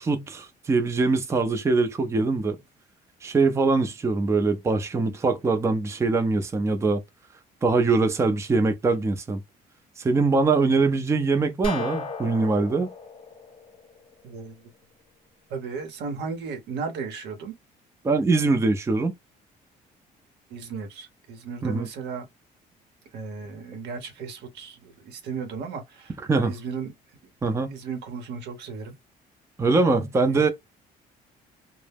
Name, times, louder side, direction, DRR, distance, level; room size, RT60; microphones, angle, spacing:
voice 1, 0.0-2.6 3.2-7.0 7.6-9.4 10.0-12.9 18.0-19.1 21.6-21.9 26.3-26.5 27.4-27.7 29.6-30.5, right 3 dB, 15° right, 0.4 m, -23 dB
sound 1, 11.6-14.4, left 4 dB, 30° left, 0.6 m, -35 dB
voice 2, 14.2-14.7 15.5-17.5 20.5-22.3 23.1-26.9 27.4-28.9 30.3-30.4, right 5 dB, 80° right, 0.8 m, -35 dB
2.0 x 2.0 x 3.3 m
cardioid pair, 110°, 17 cm